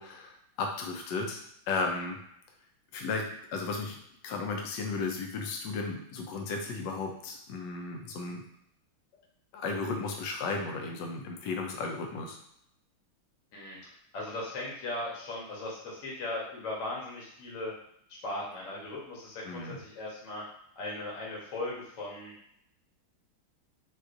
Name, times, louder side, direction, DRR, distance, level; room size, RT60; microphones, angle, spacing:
voice 1, 0.0-1.4 1.7-2.2 2.9-4.0 4.2-8.4 9.5-12.4 19.5-19.8, left 3 dB, 75° left, 2 dB, 1.2 m, -34 dB
voice 2, 13.5-17.7 18.2-20.4 20.8-22.3, left 2 dB, 45° left, -4 dB, 1.1 m, -38 dB
4.3 x 2.4 x 2.5 m, 0.73 s
omnidirectional pair, 2.3 m